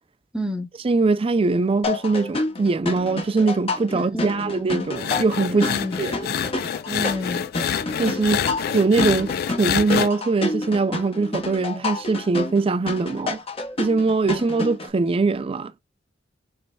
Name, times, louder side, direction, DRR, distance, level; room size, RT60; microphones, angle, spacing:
voice 1, 0.3-0.7 3.9-4.6 5.5-6.0 6.9-7.5, equal, 5° right, 0.8 m, -29 dB
voice 2, 0.8-5.7 6.0-6.4 8.0-8.4 8.7-9.3 9.6-13.4 13.8-15.7, right 3 dB, 30° right, 0.4 m, -22 dB
sound 1, 1.8-14.9, left 2 dB, 30° left, 0.8 m, -29 dB
sound 2, 5.0-10.1, left 8 dB, 50° left, 0.3 m, -27 dB
5.1 x 3.3 x 2.2 m
head